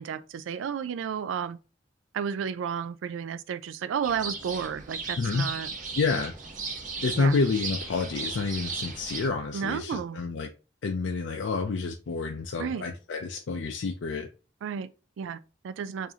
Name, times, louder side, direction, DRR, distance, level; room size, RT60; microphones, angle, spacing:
voice 1, 0.0-1.6 2.1-5.7 7.2-7.4 9.5-10.2 12.6-12.8 14.6-16.1, right 7 dB, 80° right, 0.3 m, -32 dB
sound 1, 4.0-9.3, right 4 dB, 40° right, 0.7 m, -36 dB
voice 2, 5.2-5.5 6.0-6.3 7.0-10.5 10.8-14.3, left 4 dB, 70° left, 0.4 m, -29 dB
4.7 x 2.6 x 2.7 m
head